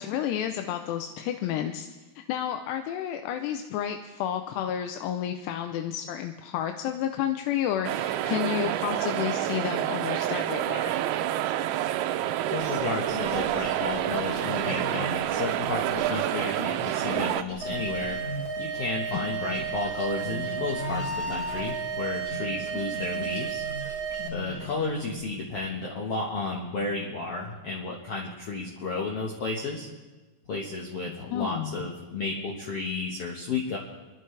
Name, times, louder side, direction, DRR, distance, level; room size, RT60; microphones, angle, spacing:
voice 1, 0.0-1.9 2.3-10.9 19.1-19.6 31.3-31.7, left 10 dB, 90° left, 6 dB, 2.8 m, -31 dB
sound 1, 7.8-17.4, right 12 dB, 80° right, 2.4 m, -28 dB
voice 2, 12.5-18.2 18.6-23.6 24.3-29.9 30.5-33.8, left 3 dB, 65° left, -2 dB, 1.5 m, -32 dB
sound 2, 12.6-18.9 19.1-25.3, equal, 30° left, 1.7 m, -40 dB
sound 3, 17.6-24.3, right 5 dB, 25° right, 2.7 m, -33 dB
30.0 x 11.0 x 3.3 m, 1.3 s
omnidirectional pair, 4.7 m